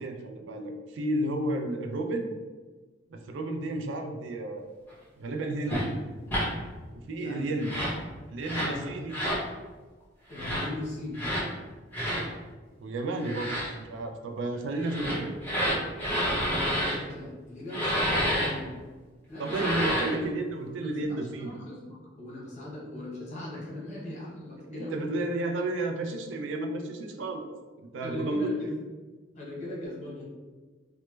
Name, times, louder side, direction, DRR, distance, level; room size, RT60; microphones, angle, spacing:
voice 1, 0.0-2.3 3.1-4.7 5.2-5.9 6.9-7.7 8.3-9.2 12.8-15.3 19.4-21.6 24.7-27.5 27.8-28.5, right 2 dB, 85° right, 4 dB, 0.4 m, -32 dB
sound 1, 5.7-5.8 6.3-6.5 7.6-8.0 8.4-8.7 9.1-9.4 10.3-10.6 11.1-11.4 11.9-12.2 13.2-13.7 14.8-17.0 17.7-18.5 19.4-20.2, equal, 10° left, 1.0 m, -29 dB
voice 2, 7.2-7.8 8.6-9.1 10.3-11.2 16.4-18.7 19.3-20.0 20.7-25.1 28.0-28.7 29.3-30.2, left 1 dB, 40° left, -5 dB, 0.9 m, -39 dB
3.1 x 2.1 x 3.1 m, 1.3 s
head